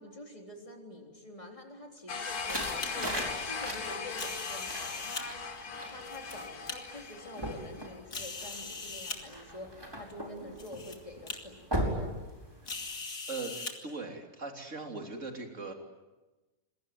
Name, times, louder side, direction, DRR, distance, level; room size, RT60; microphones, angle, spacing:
voice 1, 0.0-12.2, left 1 dB, 20° left, 2 dB, 3.9 m, -47 dB
sound 1, 2.0-2.9 4.1-5.2 5.9-6.8 7.4-7.5 8.1-9.2 10.1-10.2 10.6-11.0 11.3-11.4 12.7-13.7, left 4 dB, 65° left, 3.1 m, -40 dB
sound 2, 2.1-8.0, left 5 dB, 85° left, 1.9 m, -39 dB
sound 3, 2.2-12.9, equal, 15° right, 4.9 m, -40 dB
voice 2, 13.3-15.7, right 3 dB, 55° right, 3 dB, 3.7 m, -40 dB
27.5 x 22.0 x 9.4 m, 1.1 s
omnidirectional pair, 1.6 m